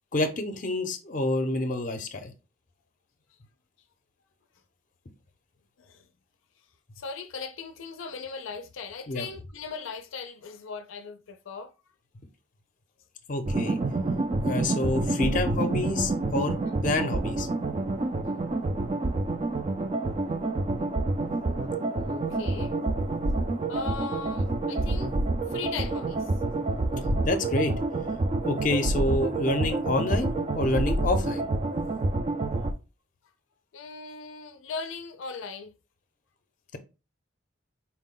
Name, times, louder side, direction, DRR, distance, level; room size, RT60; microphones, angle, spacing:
voice 1, 0.1-2.3 9.1-9.3 13.3-13.8 14.4-16.6 16.8-17.5 27.1-27.7 28.4-31.5, left 2 dB, 40° left, 0.6 m, -28 dB
voice 2, 7.0-11.7 22.1-22.8 23.7-25.1 25.5-26.3 33.7-35.8, left 5 dB, 85° left, 0.4 m, -38 dB
sound 1, 13.5-32.7, right 2 dB, 30° right, 0.3 m, -28 dB
4.4 x 2.1 x 3.7 m
head